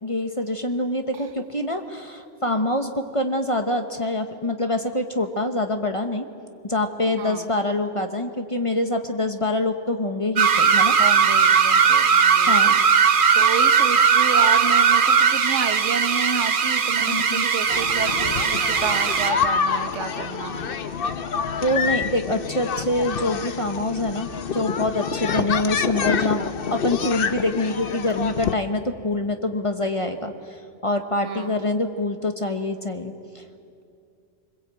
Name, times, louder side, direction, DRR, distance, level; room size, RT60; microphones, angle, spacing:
voice 1, 0.0-6.3 6.6-11.0 12.5-12.7 17.0-17.5 21.6-26.4 26.7-30.3 30.8-33.4, left 1 dB, 25° left, 6 dB, 1.1 m, -25 dB
voice 2, 7.2-7.5 11.0-20.7 25.3-25.5 31.2-31.5, right 6 dB, 70° right, 9 dB, 1.4 m, -31 dB
sound 1, 10.4-19.4, right 6 dB, 45° right, 1.0 m, -18 dB
sound 2, 17.7-28.5, left 6 dB, 50° left, 0.9 m, -27 dB
25.0 x 21.0 x 8.3 m, 2.5 s
omnidirectional pair, 1.3 m